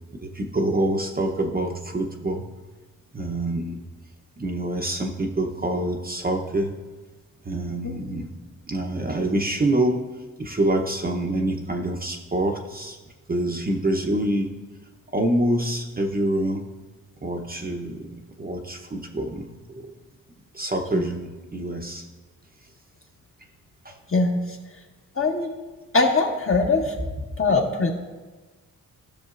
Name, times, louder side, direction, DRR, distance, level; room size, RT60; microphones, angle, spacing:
voice 1, 0.1-2.4 3.1-3.8 4.4-6.7 7.4-8.3 8.7-10.1 10.4-13.0 13.3-14.5 15.1-16.6 17.2-19.9 20.5-22.0 23.8-23.9, right 1 dB, 25° right, 2 dB, 0.8 m, -26 dB
voice 2, 25.2-25.5 25.9-27.0 27.4-27.9, left 3 dB, 40° left, 1 dB, 1.4 m, -21 dB
15.5 x 6.3 x 2.5 m, 1.2 s
cardioid pair, 95°, 34 cm